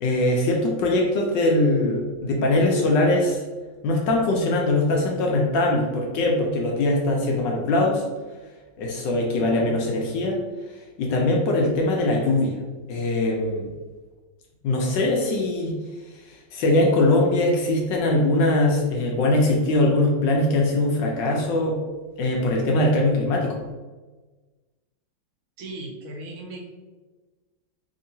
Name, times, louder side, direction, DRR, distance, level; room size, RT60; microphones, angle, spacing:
voice 1, 0.0-3.4 3.8-8.0 8.8-10.4 11.0-12.6 12.9-13.7 14.6-15.7 16.3-21.8 22.2-23.6, left 2 dB, 75° left, -1 dB, 1.2 m, -21 dB
voice 2, 25.6-26.7, right 2 dB, 90° right, 1 dB, 1.5 m, -37 dB
3.5 x 2.8 x 2.7 m, 1.3 s
omnidirectional pair, 2.1 m